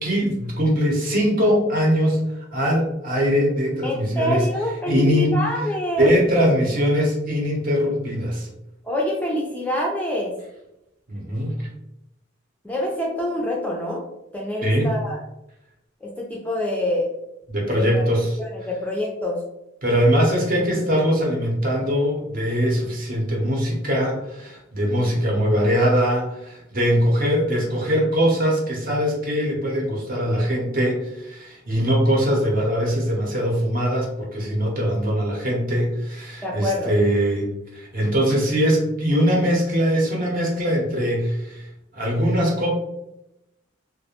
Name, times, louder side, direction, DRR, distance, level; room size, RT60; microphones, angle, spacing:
voice 1, 0.0-4.5 4.9-5.3 6.0-8.5 11.1-11.7 14.6-14.9 17.5-18.4 19.8-41.7 41.9-42.7, equal, 45° right, -2 dB, 0.7 m, -21 dB
voice 2, 3.8-6.1 8.8-10.3 12.6-14.0 14.3-15.2 16.0-17.1 17.7-18.0 18.4-19.4 36.4-36.9, left 1 dB, 10° left, -2 dB, 0.3 m, -26 dB
2.4 x 2.1 x 2.8 m, 0.87 s
head